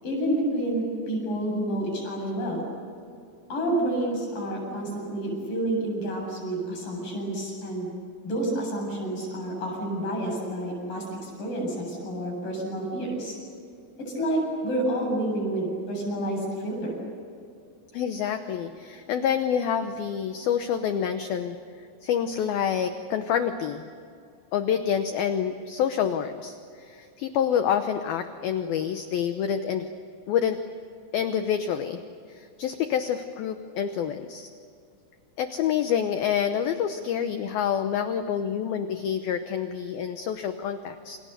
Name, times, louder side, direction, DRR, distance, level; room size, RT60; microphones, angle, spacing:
voice 1, 0.0-2.7 3.5-7.9 8.2-13.4 14.0-17.0, right 1 dB, 45° left, 0 dB, 9.2 m, -29 dB
voice 2, 17.9-21.6 22.0-23.9 24.5-29.9 30.3-30.6 31.1-32.0 32.3-34.5 35.4-41.2, left 8 dB, 80° left, 8 dB, 2.2 m, -27 dB
28.5 x 28.5 x 6.8 m, 2.4 s
omnidirectional pair, 5.6 m